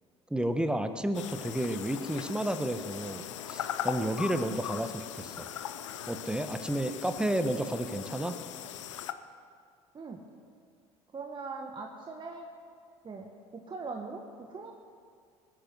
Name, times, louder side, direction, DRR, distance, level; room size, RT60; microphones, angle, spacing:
voice 1, 0.3-5.5 6.1-8.3, right 1 dB, 5° right, 9 dB, 1.2 m, -31 dB
sound 1, 1.1-9.1, left 10 dB, 85° left, 0.6 m, -39 dB
voice 2, 11.1-12.5 13.0-14.7, right 4 dB, 30° right, 2 dB, 1.5 m, -41 dB
20.5 x 9.2 x 6.2 m, 2.2 s
hypercardioid pair, 65°, 15 cm